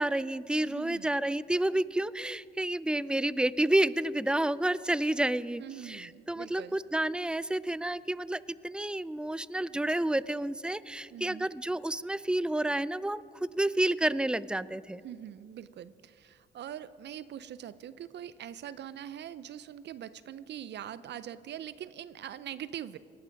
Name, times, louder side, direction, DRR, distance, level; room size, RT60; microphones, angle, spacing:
voice 1, 0.0-15.0, right 1 dB, 5° right, 19 dB, 0.4 m, -30 dB
voice 2, 0.6-1.1 5.6-6.8 11.1-11.5 15.0-23.0, right 10 dB, 60° right, 15 dB, 0.5 m, -43 dB
18.5 x 11.5 x 5.2 m, 2.3 s
supercardioid pair, 75°, 20 cm